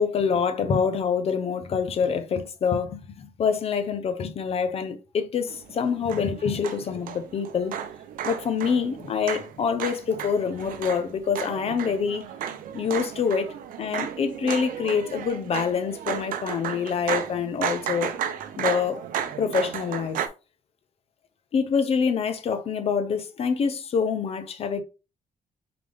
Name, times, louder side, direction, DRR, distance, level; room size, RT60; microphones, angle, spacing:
voice 1, 0.0-7.7 8.2-12.2 12.7-18.1 18.6-19.0 19.4-20.2 21.5-24.8, left 6 dB, 45° left, 0.6 m, -26 dB
sound 1, 5.5-20.3, right 9 dB, 80° right, 0.6 m, -34 dB
3.8 x 3.3 x 3.3 m
cardioid pair, 165°, 14 cm